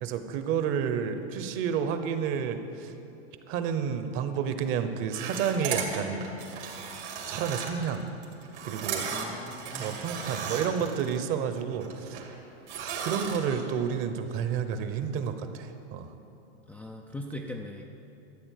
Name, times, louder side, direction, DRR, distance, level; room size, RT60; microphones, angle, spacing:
voice 1, 0.0-2.9 3.5-6.3 7.3-8.0 8.6-9.0 9.8-12.2 12.8-16.1, right 7 dB, 40° right, 9 dB, 1.0 m, -30 dB
sound 1, 5.1-11.2 11.5-12.3 12.7-13.6, right 6 dB, 80° right, 2.7 m, -36 dB
voice 2, 9.1-10.1 16.7-17.9, left 1 dB, 5° left, -1 dB, 0.4 m, -40 dB
13.0 x 7.8 x 6.6 m, 2.9 s
hypercardioid pair, 120°, 34 cm